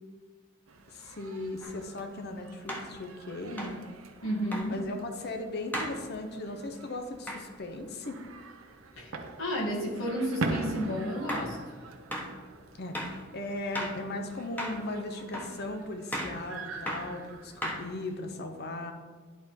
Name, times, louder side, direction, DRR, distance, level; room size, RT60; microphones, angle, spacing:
sound 1, 0.7-18.1, right 2 dB, 85° right, 0.8 m, -43 dB
voice 1, 0.9-3.8 4.7-8.2 12.7-18.9, left 2 dB, 55° left, 5 dB, 0.9 m, -37 dB
sound 2, 1.6-1.7 2.7-2.9 3.6-3.8 4.5-4.7 5.7-6.0 7.3-7.5 10.5-10.7 11.3-11.5 12.1-12.3 12.9-13.2 13.7-14.0 14.6-14.8 15.3-15.6 16.1-16.4 16.9-17.1 17.6-18.1, equal, 10° left, 1.1 m, -35 dB
voice 2, 4.2-4.8 9.0-11.6, equal, 85° left, -3 dB, 2.2 m, -32 dB
11.0 x 3.8 x 4.5 m, 1.5 s
head